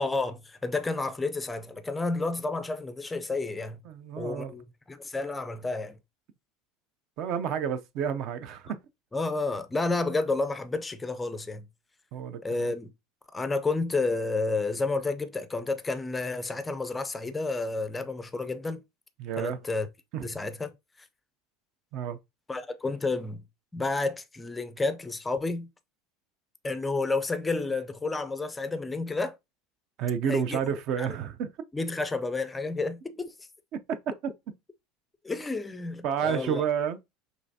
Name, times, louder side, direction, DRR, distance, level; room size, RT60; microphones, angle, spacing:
voice 1, 0.0-3.8 4.2-6.0 9.1-11.7 12.4-12.9 13.3-18.8 19.4-19.9 20.2-20.7 22.5-23.4 23.7-25.7 26.6-29.4 30.3-30.6 31.0-31.2 31.7-33.3 35.2-36.6, left 3 dB, 10° left, 0.4 m, -30 dB
voice 2, 3.8-4.5 7.2-8.8 12.1-12.7 19.2-19.6 20.1-20.3 21.9-22.2 30.0-31.5 33.7-34.3 36.0-37.0, right 8 dB, 45° right, 0.5 m, -30 dB
5.4 x 3.3 x 2.7 m
cardioid pair, 160°, 0 cm